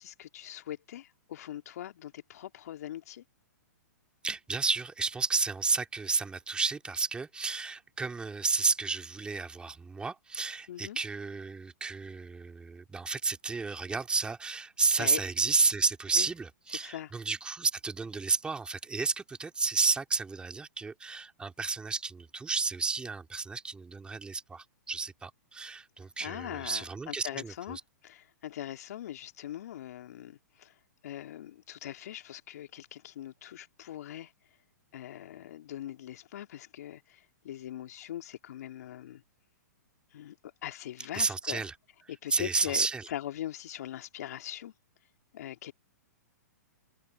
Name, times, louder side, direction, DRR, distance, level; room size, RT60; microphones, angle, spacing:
voice 1, 0.0-3.2 10.7-11.0 14.9-15.2 16.1-16.3 16.7-17.1 26.2-27.8 28.0-30.7 31.0-34.3 34.9-39.2 40.1-41.7 42.1-44.7 45.3-45.7, left 12 dB, 65° left, 2.7 m, -41 dB
voice 2, 4.2-27.8 41.1-41.7 42.3-43.0, right 4 dB, 10° right, 2.7 m, -31 dB
hypercardioid pair, 125°, 9 cm